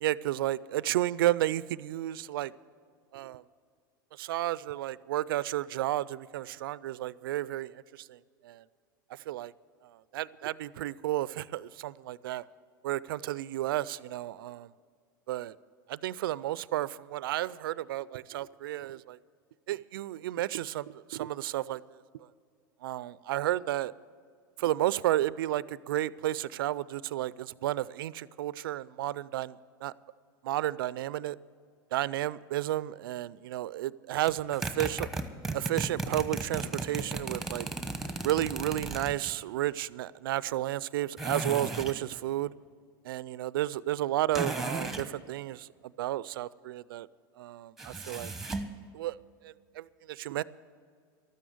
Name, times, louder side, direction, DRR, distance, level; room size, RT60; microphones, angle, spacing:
voice 1, 0.0-2.5 3.1-3.4 4.2-7.7 8.0-8.2 8.4-8.6 9.3-9.5 10.1-12.4 12.8-14.7 15.3-15.6 15.9-19.2 19.7-21.8 22.8-23.9 24.6-29.6 29.8-29.9 30.4-31.4 31.9-35.1 35.5-37.7 38.2-42.5 43.1-45.7 46.0-47.1 47.4-48.3 48.9-49.2 49.4-50.4, right 14 dB, 80° right, 0.4 m, -32 dB
sound 1, 34.3-39.3 41.2-42.0 44.3-45.1 47.8-48.7, right 2 dB, ahead, 1.1 m, -35 dB
13.0 x 9.4 x 7.8 m
hypercardioid pair, 100°, 12 cm